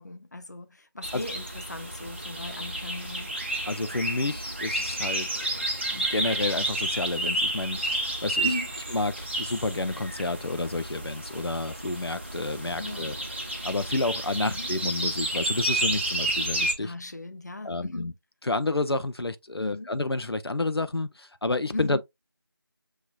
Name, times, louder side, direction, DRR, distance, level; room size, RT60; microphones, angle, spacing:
voice 1, 0.0-3.3 8.4-8.7 12.8-13.1 14.4-14.7 16.8-18.1 19.6-19.9 21.7-22.0, left 2 dB, 45° left, 0.6 m, -37 dB
sound 1, 1.0-16.7, right 1 dB, 30° right, 0.6 m, -31 dB
voice 2, 3.7-5.4 5.9-8.5 8.9-13.1 13.4-16.9 17.6-18.1 18.4-22.0, left 2 dB, 85° left, 0.5 m, -30 dB
6.3 x 2.8 x 2.3 m
figure-of-eight pair, 170°, 13 cm